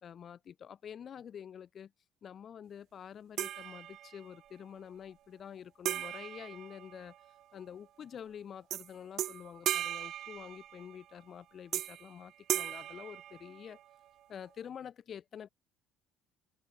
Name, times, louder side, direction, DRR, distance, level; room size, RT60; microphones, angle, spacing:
voice 1, 0.0-1.9 2.2-7.1 7.5-13.8 14.3-15.5, left 8 dB, 45° left, 0.7 m, -48 dB
sound 1, 3.4-4.4 5.9-7.4 8.7-8.9 9.2-11.0 11.7-12.1 12.5-13.9, right 12 dB, 60° right, 0.7 m, -37 dB
hypercardioid pair, 65°, 0 cm